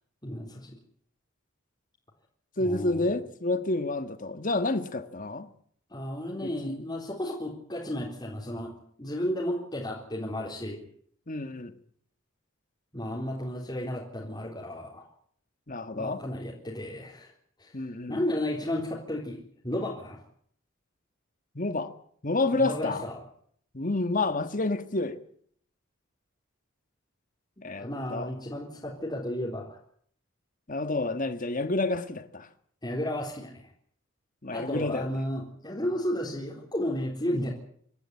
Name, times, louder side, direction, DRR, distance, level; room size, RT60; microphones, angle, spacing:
voice 1, 0.2-0.8 2.6-3.1 5.9-8.7 9.0-10.8 12.9-15.1 15.9-17.3 17.6-20.2 22.6-23.2 27.8-29.8 32.8-33.6 34.5-37.5, left 1 dB, 20° left, 3.8 m, -33 dB
voice 2, 2.6-5.5 6.4-6.9 11.3-11.7 15.7-16.2 17.7-18.2 21.5-21.9 22.2-23.0 23.7-25.2 27.6-28.3 30.7-32.5 34.4-35.1, left 2 dB, 40° left, 1.6 m, -29 dB
26.5 x 13.0 x 9.8 m
head